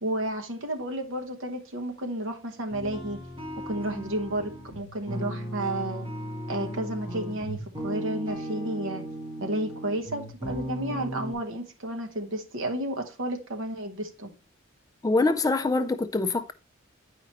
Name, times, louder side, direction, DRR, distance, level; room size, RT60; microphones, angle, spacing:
voice 1, 0.0-3.2 3.7-6.1 6.5-9.0 9.4-14.3, right 1 dB, 75° right, 1.1 m, -32 dB
sound 1, 2.7-11.3, right 1 dB, 25° right, 1.9 m, -36 dB
voice 2, 15.0-16.5, left 3 dB, 20° left, 0.3 m, -24 dB
8.8 x 5.0 x 3.0 m
head